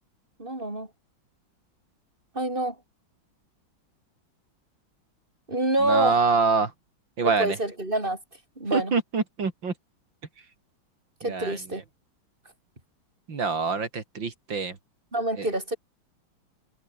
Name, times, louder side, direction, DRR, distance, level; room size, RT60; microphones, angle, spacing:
voice 1, 0.4-0.9 2.3-2.8 5.5-6.2 7.2-8.2 8.6-8.9 11.2-11.8 15.1-15.8, right 1 dB, 25° right, 5.0 m, -27 dB
voice 2, 5.8-6.7 7.2-7.6 8.7-9.7 11.2-11.8 13.3-14.8 15.4-15.5, right 4 dB, 65° right, 3.5 m, -25 dB
omnidirectional pair, 2.3 m